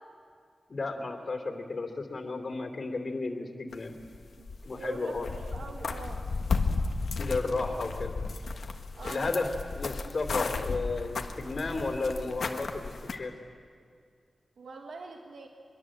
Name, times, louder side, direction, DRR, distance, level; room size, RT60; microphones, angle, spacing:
voice 1, 0.7-3.9 4.6-5.3 7.2-8.1 9.0-13.3, left 3 dB, 50° left, 4 dB, 3.0 m, -33 dB
sound 1, 3.7-4.8 5.1-13.1, left 4 dB, 70° left, 1.4 m, -34 dB
voice 2, 4.4-6.2 9.0-9.5 14.6-15.5, right 3 dB, 85° right, 2 dB, 1.6 m, -43 dB
23.5 x 22.5 x 7.7 m, 2.1 s
wide cardioid pair, 120°, 0 cm